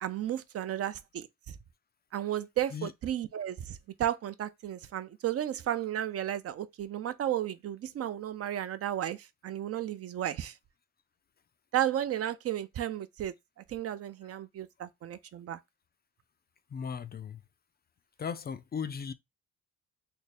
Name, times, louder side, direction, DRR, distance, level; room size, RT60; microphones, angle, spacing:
voice 1, 0.0-1.3 2.1-10.5 11.7-13.3 13.7-15.6, right 11 dB, 50° right, 0.5 m, -33 dB
voice 2, 16.7-17.4 18.2-19.1, left 6 dB, 35° left, 0.4 m, -37 dB
3.5 x 2.1 x 4.1 m
cardioid pair, 90°, 30 cm